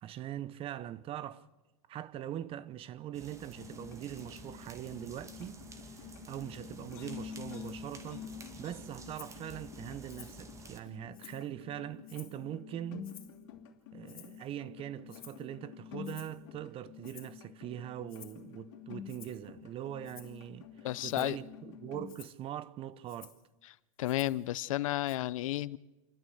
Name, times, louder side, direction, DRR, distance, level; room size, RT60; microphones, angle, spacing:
voice 1, 0.0-1.5 1.9-5.6 5.9-8.3 8.6-13.1 13.9-23.4, right 11 dB, 35° right, 0.9 m, -42 dB
sound 1, 3.1-10.8, right 3 dB, 15° right, 2.1 m, -52 dB
sound 2, 3.6-22.1, left 9 dB, 60° left, 2.8 m, -49 dB
Rattle (instrument), 9.2-9.4 10.1-10.4 10.8-11.5 12.0-12.4 13.0-13.4 14.1-14.5 15.1-15.5 16.0-16.4 17.0-17.4 18.1-18.4 19.1-19.5 20.0-20.4 21.0-21.4 22.1-22.4 23.1-23.4 24.0-24.5 25.1-25.2, left 9 dB, 90° left, 2.4 m, -54 dB
voice 2, 20.8-21.4 24.0-25.8, left 15 dB, 75° left, 0.7 m, -32 dB
28.0 x 12.5 x 8.0 m
supercardioid pair, 125°, 17 cm